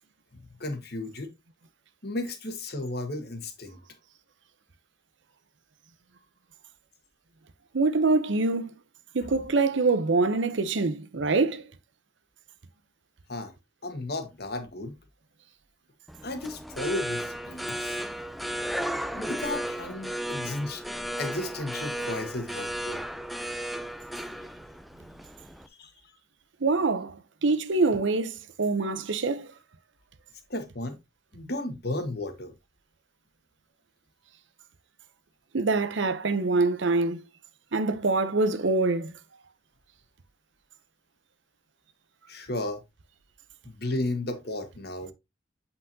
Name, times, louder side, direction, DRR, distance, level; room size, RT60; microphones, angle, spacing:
voice 1, 0.3-1.3 2.0-3.8 9.2-9.4 13.3-13.5 13.8-14.9 16.2-18.0 19.1-20.8 21.2-23.0 25.8-25.9 30.5-31.0 31.3-32.5 42.3-42.8 43.6-45.1, left 2 dB, 55° left, 1.4 m, -34 dB
voice 2, 7.7-8.7 9.1-11.6 26.6-27.2 27.4-28.3 28.6-29.5 35.5-37.2 37.7-39.1, right 3 dB, 70° right, 0.7 m, -24 dB
sound 1, 16.1-25.7, equal, ahead, 0.4 m, -34 dB
7.9 x 5.7 x 2.7 m
head